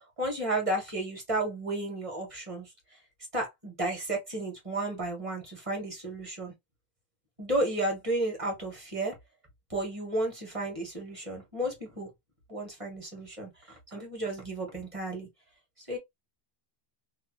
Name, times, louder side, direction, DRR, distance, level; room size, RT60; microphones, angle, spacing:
voice 1, 0.0-2.7 3.3-6.5 7.4-9.2 9.7-12.1 12.5-15.3 15.8-16.0, right 1 dB, 30° right, 1.3 m, -33 dB
2.7 x 2.3 x 2.9 m
omnidirectional pair, 1.1 m